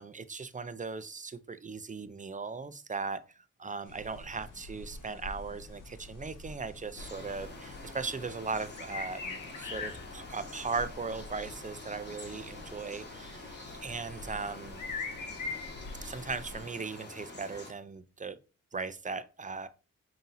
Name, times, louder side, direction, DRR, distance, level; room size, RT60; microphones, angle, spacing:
voice 1, 0.0-3.2 3.6-14.8 16.0-18.4 18.7-19.7, right 4 dB, 25° right, 0.4 m, -38 dB
sound 1, 3.8-16.6, left 3 dB, 75° left, 0.9 m, -44 dB
sound 2, 7.0-17.7, left 2 dB, 35° left, 1.6 m, -47 dB
5.3 x 2.8 x 2.6 m
supercardioid pair, 45°, 32 cm